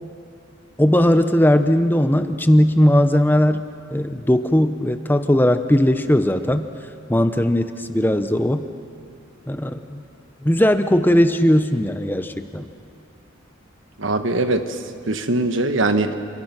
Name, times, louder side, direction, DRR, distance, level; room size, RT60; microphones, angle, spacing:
voice 1, 0.8-3.7 3.9-6.7 7.1-8.6 9.5-10.0 10.4-12.7, left 1 dB, 10° left, 9 dB, 0.7 m, -18 dB
voice 2, 14.0-14.8 15.1-16.1, right 2 dB, 70° right, 8 dB, 1.4 m, -21 dB
28.5 x 26.5 x 6.0 m, 2.3 s
head